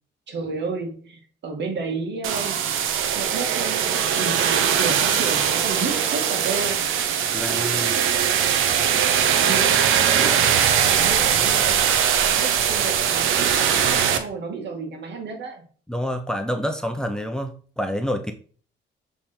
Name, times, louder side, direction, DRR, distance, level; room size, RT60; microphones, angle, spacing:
voice 1, 0.3-2.6 3.2-6.9 9.3-9.9 10.1-10.5 10.8-11.9 12.2-15.6, right 4 dB, 60° right, 4 dB, 1.9 m, -31 dB
sound 1, 2.2-14.2, right 8 dB, 90° right, 0.8 m, -21 dB
voice 2, 7.3-8.0 9.0-9.3 15.9-18.3, equal, 5° left, 5 dB, 0.8 m, -28 dB
7.2 x 3.6 x 4.4 m, 0.43 s
cardioid pair, 90°, 20 cm